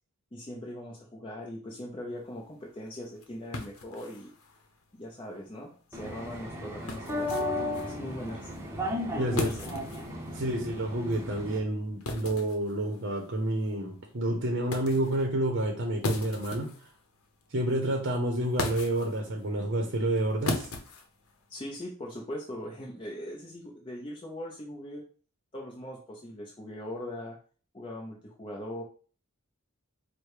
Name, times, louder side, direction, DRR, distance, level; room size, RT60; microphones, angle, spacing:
voice 1, 0.3-4.3 4.9-8.5 9.1-9.6 21.5-25.0 25.5-27.4 27.7-28.8, left 1 dB, 25° left, -2 dB, 0.6 m, -40 dB
sound 1, 2.2-21.8, left 2 dB, 75° left, 0.8 m, -40 dB
sound 2, 5.9-11.6, left 1 dB, 10° right, 0.8 m, -35 dB
voice 2, 9.2-9.5 10.3-16.9 17.5-20.7, right 1 dB, 55° right, 1 dB, 0.7 m, -29 dB
4.8 x 2.2 x 4.7 m, 0.40 s
head